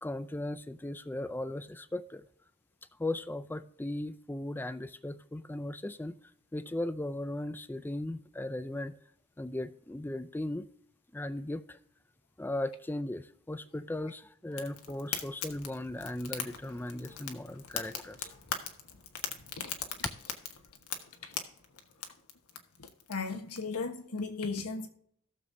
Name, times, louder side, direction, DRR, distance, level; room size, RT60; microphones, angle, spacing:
voice 1, 0.0-2.2 3.0-6.2 6.5-8.9 9.4-10.7 11.1-11.8 12.4-18.3, left 1 dB, 10° left, 0.4 m, -37 dB
Fire, 14.5-23.6, left 8 dB, 75° left, 1.2 m, -41 dB
voice 2, 23.1-24.9, left 4 dB, 90° left, 1.3 m, -36 dB
18.0 x 6.9 x 2.7 m
head